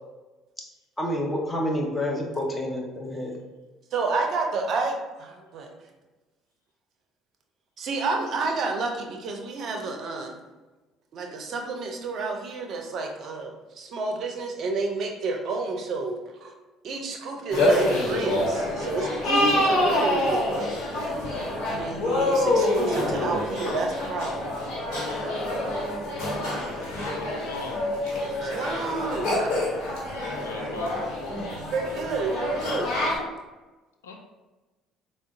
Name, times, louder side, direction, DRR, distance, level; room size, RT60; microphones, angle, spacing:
voice 1, 1.0-3.3, left 1 dB, 15° left, -1 dB, 0.8 m, -28 dB
voice 2, 3.9-5.7 7.8-10.4 11.1-16.5 16.8-20.7 21.7-24.5 28.4-29.3 31.0-31.1 31.5-32.9, right 3 dB, 55° right, 2 dB, 0.5 m, -30 dB
sound 1, 17.5-33.2, left 1 dB, 65° left, 1.0 m, -26 dB
voice 3, 26.9-27.8 30.1-30.9 34.0-34.2, left 4 dB, 85° left, 3 dB, 0.3 m, -39 dB
3.6 x 2.1 x 2.5 m, 1.2 s
hypercardioid pair, 55°, 0 cm